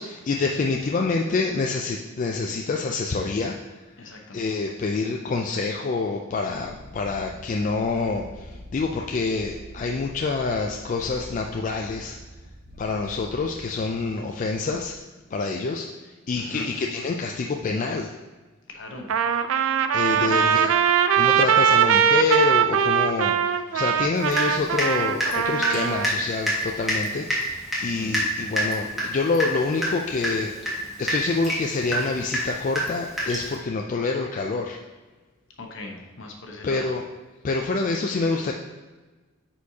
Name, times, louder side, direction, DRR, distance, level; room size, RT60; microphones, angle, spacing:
voice 1, 0.0-3.6 4.3-12.2 12.8-14.9 15.3-18.1 19.9-20.7 21.1-34.8 36.6-37.0 37.4-38.5, left 4 dB, 40° left, 2 dB, 0.3 m, -27 dB
voice 2, 4.0-4.4 16.4-16.7 18.7-19.1 20.1-20.6 27.9-28.1 35.6-36.9, left 2 dB, 60° left, 2 dB, 1.0 m, -39 dB
sound 1, 6.5-15.0, equal, 55° right, 1.1 m, -45 dB
Trumpet, 19.1-26.1, right 8 dB, 75° right, 0.4 m, -21 dB
Water tap faucet / Drip, 24.3-24.9 25.2-33.6, equal, ahead, 1.6 m, -27 dB
9.3 x 4.4 x 2.8 m, 1.3 s
head